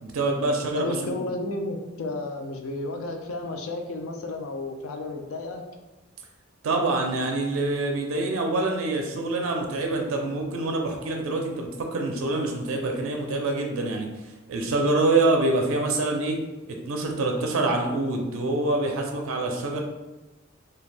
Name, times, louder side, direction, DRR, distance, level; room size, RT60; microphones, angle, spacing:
voice 1, 0.0-1.2 6.6-16.4 16.7-19.8, right 2 dB, 70° right, 2 dB, 0.4 m, -26 dB
voice 2, 0.7-5.7, left 2 dB, 85° left, 4 dB, 0.4 m, -32 dB
2.5 x 2.2 x 3.3 m, 1.1 s
head